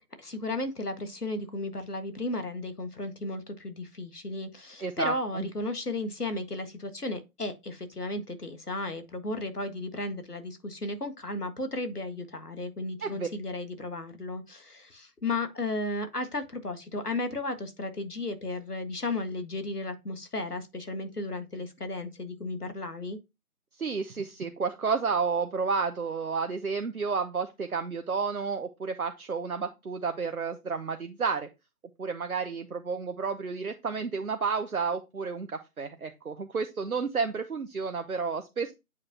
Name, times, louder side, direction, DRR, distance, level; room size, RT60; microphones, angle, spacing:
voice 1, 0.2-23.2, left 2 dB, 90° left, 1.7 m, -34 dB
voice 2, 4.8-5.5 13.0-13.3 23.8-31.5 32.0-38.7, right 5 dB, 70° right, 0.9 m, -31 dB
8.4 x 4.8 x 2.8 m
figure-of-eight pair, 160°, 45 cm